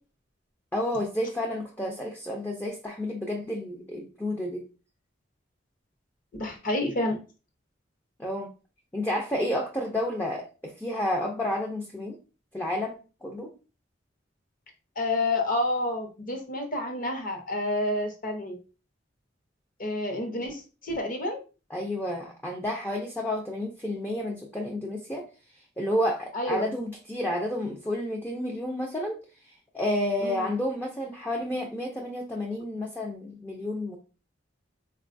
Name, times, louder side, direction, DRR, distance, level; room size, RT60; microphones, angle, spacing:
voice 1, 0.7-4.6 8.2-8.5 8.9-12.2 12.5-13.5 21.7-25.2 25.8-29.2 29.7-34.0, left 1 dB, 10° left, 0 dB, 0.4 m, -30 dB
voice 2, 6.4-7.2 15.0-18.6 19.8-21.4 26.3-26.7 30.2-30.5, left 1 dB, 45° left, 3 dB, 0.8 m, -29 dB
3.7 x 2.3 x 2.5 m, 0.33 s
head